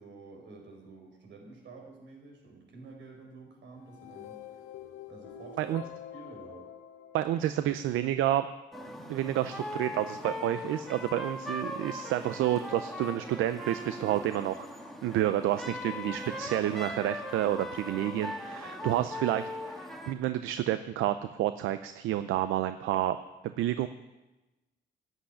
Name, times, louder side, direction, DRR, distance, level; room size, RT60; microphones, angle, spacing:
voice 1, 0.0-4.6 5.1-5.8 6.1-6.7 11.7-11.9 18.6-19.0, right 3 dB, 65° right, 1 dB, 4.8 m, -50 dB
sound 1, 3.8-8.1, left 9 dB, 85° left, 1.0 m, -47 dB
voice 2, 7.1-8.5 9.1-14.7 15.0-23.2 23.6-23.9, right 13 dB, 85° right, 11 dB, 0.6 m, -29 dB
sound 2, 8.7-20.1, left 1 dB, ahead, 1.7 m, -39 dB
11.5 x 8.1 x 10.0 m, 1.1 s
cardioid pair, 90°, 20 cm